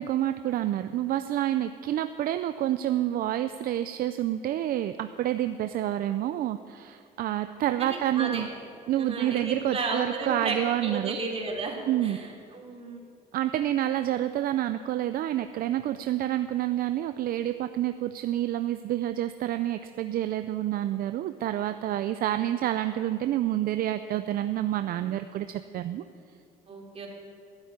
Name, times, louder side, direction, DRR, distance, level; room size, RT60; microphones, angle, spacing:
voice 1, 0.0-8.5 8.9-11.2 11.9-12.2 13.3-26.0, right 12 dB, 60° right, 10 dB, 0.5 m, -28 dB
voice 2, 7.8-8.4 8.9-10.6 10.8-13.0 26.7-27.1, right 3 dB, 35° right, -1 dB, 3.3 m, -33 dB
14.0 x 8.3 x 9.7 m, 2.3 s
cardioid pair, 110°, 17 cm